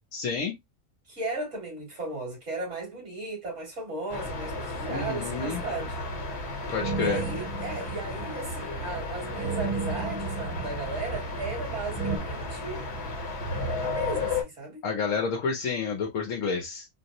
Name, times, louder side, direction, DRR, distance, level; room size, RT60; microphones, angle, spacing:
voice 1, 0.1-0.5 4.9-5.6 6.7-7.2 14.8-16.9, left 5 dB, 70° left, 1.0 m, -29 dB
voice 2, 1.1-6.0 6.6-12.9 13.8-14.8, right 2 dB, 55° right, 2.3 m, -36 dB
sound 1, 4.1-14.4, left 2 dB, 50° left, 1.1 m, -34 dB
sound 2, 4.9-5.5 6.8-8.6 9.4-11.6 12.0-12.2, right 4 dB, 25° right, 0.6 m, -34 dB
3.8 x 2.0 x 2.7 m
omnidirectional pair, 1.5 m